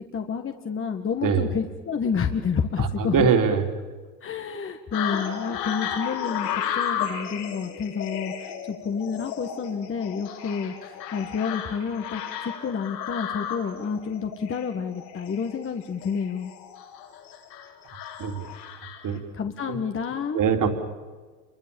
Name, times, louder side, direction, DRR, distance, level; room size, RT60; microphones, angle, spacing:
voice 1, 0.0-3.3 4.2-6.5 6.8-10.7 11.1-16.5 19.3-20.4, left 6 dB, 25° left, 5 dB, 1.9 m, -29 dB
voice 2, 2.8-3.6 18.2-18.4 19.0-19.2 19.7-19.8 20.3-20.7, right 6 dB, 40° right, 4 dB, 3.9 m, -22 dB
sound 1, 4.9-19.2, left 9 dB, 80° left, 6.3 m, -34 dB
29.0 x 23.5 x 7.3 m, 1.4 s
hypercardioid pair, 85°, 49 cm